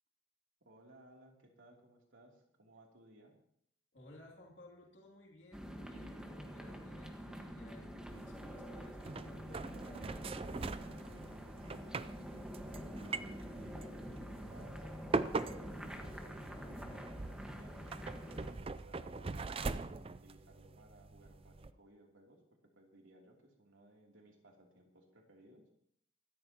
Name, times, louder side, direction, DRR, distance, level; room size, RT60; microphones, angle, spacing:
voice 1, 0.6-3.3 10.8-19.5 19.7-22.4 22.7-25.7, right 1 dB, 90° right, 0 dB, 3.0 m, -62 dB
voice 2, 3.9-9.8, left 1 dB, 65° left, -1 dB, 2.8 m, -59 dB
sound 1, 5.5-18.5, equal, 5° right, 1.4 m, -47 dB
sound 2, 8.1-21.7, right 3 dB, 30° right, 0.5 m, -43 dB
24.0 x 13.0 x 2.9 m, 0.68 s
head